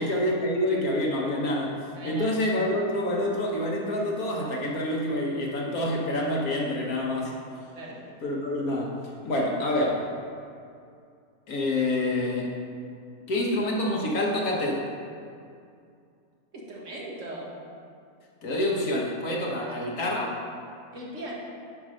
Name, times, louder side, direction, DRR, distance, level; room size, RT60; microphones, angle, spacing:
voice 1, 0.0-1.8 2.0-7.3 8.2-9.0 9.2-10.1 11.5-12.5 13.3-14.9 18.4-20.3, left 1 dB, 75° left, -1 dB, 1.7 m, -27 dB
voice 2, 2.0-2.3 7.7-8.0 16.5-17.5 19.7-19.8 20.9-21.3, right 1 dB, 55° right, -4 dB, 1.8 m, -39 dB
8.6 x 4.6 x 6.3 m, 2.4 s
omnidirectional pair, 1.6 m